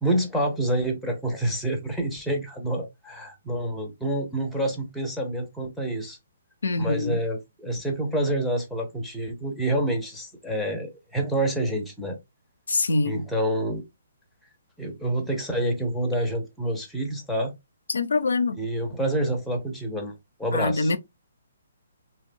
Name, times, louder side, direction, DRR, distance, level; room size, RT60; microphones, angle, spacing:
voice 1, 0.0-6.2 6.8-12.2 13.0-13.8 14.8-17.5 18.6-20.1 20.4-20.9, right 1 dB, ahead, 0.6 m, -27 dB
voice 2, 6.6-7.2 12.7-13.2 17.9-18.6 20.5-21.0, left 3 dB, 85° left, 0.4 m, -24 dB
2.9 x 2.1 x 2.5 m
hypercardioid pair, 155°, 0 cm